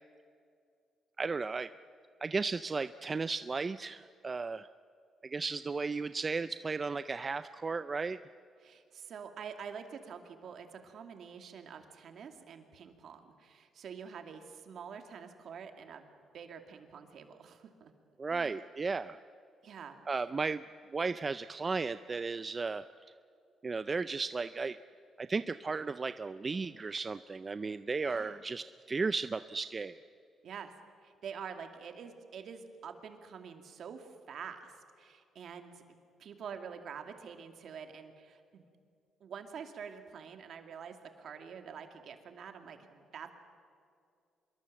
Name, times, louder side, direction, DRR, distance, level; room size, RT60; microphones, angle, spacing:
voice 1, 1.2-1.7 2.2-4.7 5.2-8.2 18.2-19.2 20.1-20.6 20.9-22.8 23.6-24.8 25.2-29.9, right 4 dB, 30° right, 13 dB, 0.5 m, -35 dB
voice 2, 8.6-17.9 18.3-18.6 19.6-20.0 28.0-28.4 30.4-30.7 31.0-35.8 36.2-38.6 39.2-43.3, right 7 dB, 65° right, 6 dB, 2.5 m, -47 dB
25.5 x 22.0 x 7.7 m, 2.4 s
cardioid pair, 90°, 0 cm